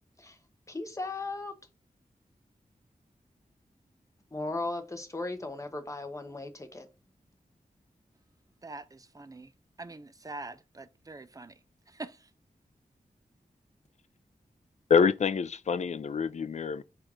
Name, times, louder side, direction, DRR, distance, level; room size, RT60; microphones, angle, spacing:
voice 1, 0.7-1.5 4.3-6.9, left 2 dB, 20° left, 0.7 m, -36 dB
voice 2, 8.6-9.5 9.8-11.6 11.9-12.3, right 2 dB, 25° right, 0.4 m, -44 dB
voice 3, 14.9-16.8, left 6 dB, 50° left, 0.4 m, -26 dB
4.4 x 2.4 x 4.7 m
wide cardioid pair, 100°, 15 cm